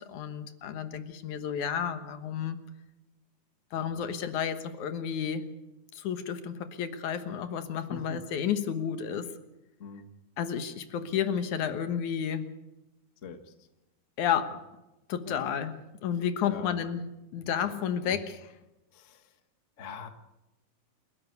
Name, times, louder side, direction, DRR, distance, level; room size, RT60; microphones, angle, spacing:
voice 1, 0.1-2.6 3.7-5.4 5.9-9.3 10.4-12.5 14.2-14.5 15.1-15.7 16.0-17.0 17.3-18.5, left 8 dB, 70° left, 9 dB, 2.7 m, -31 dB
voice 2, 7.9-8.3 9.8-10.1 13.2-13.7 15.2-15.5 16.4-16.8 18.0-18.2 18.9-19.3 19.8-20.1, left 5 dB, 35° left, 7 dB, 1.2 m, -43 dB
29.0 x 12.0 x 8.2 m, 0.99 s
omnidirectional pair, 3.6 m